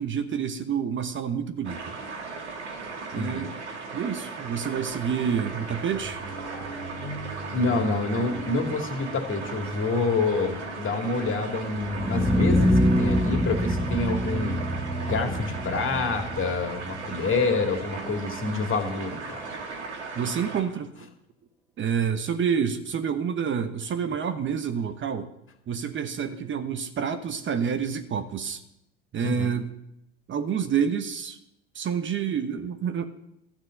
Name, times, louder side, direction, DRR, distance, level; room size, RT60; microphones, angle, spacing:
voice 1, 0.0-1.9 3.1-3.5 3.9-6.2 20.1-21.1 21.8-25.3 25.7-28.6 29.1-29.7 30.3-31.4 31.7-33.1, right 7 dB, 35° right, 8 dB, 1.1 m, -28 dB
sound 1, 1.6-20.6, right 4 dB, 90° right, 2.0 m, -37 dB
voice 2, 3.1-3.5 7.5-14.6 15.1-19.4 29.2-29.5, left 3 dB, 35° left, 4 dB, 2.4 m, -27 dB
sound 2, 5.5-17.1, equal, 85° left, 1.8 m, -41 dB
sound 3, 11.8-17.8, equal, ahead, 1.1 m, -26 dB
13.0 x 6.0 x 7.7 m, 0.81 s
hypercardioid pair, 70°, 33 cm